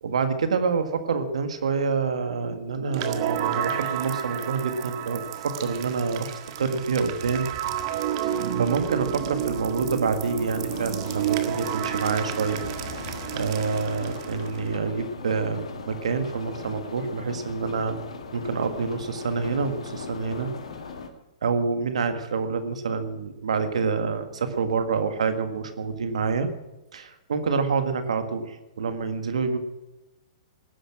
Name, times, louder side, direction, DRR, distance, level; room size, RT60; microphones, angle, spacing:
voice 1, 0.0-7.5 8.2-12.6 13.3-18.0 18.3-20.5 21.4-26.5 26.9-29.6, right 5 dB, 80° right, 8 dB, 1.7 m, -27 dB
sound 1, 2.9-14.8, right 10 dB, 50° right, 1.7 m, -31 dB
sound 2, 10.2-21.1, left 5 dB, 80° left, 2.0 m, -39 dB
19.0 x 10.0 x 6.1 m, 1.0 s
hypercardioid pair, 115°, 3 cm